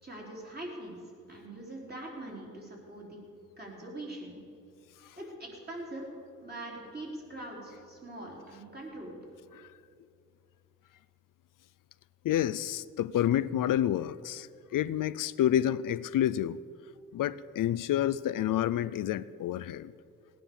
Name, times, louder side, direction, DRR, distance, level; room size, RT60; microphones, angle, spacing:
voice 1, 0.0-1.0 1.3-3.2 3.6-4.4 5.2-6.1 6.4-9.2, right 1 dB, 30° right, -2 dB, 3.7 m, -42 dB
voice 2, 12.2-16.6 17.1-19.9, left 11 dB, 85° left, 17 dB, 0.5 m, -29 dB
18.0 x 9.5 x 6.9 m, 2.3 s
wide cardioid pair, 125°, 31 cm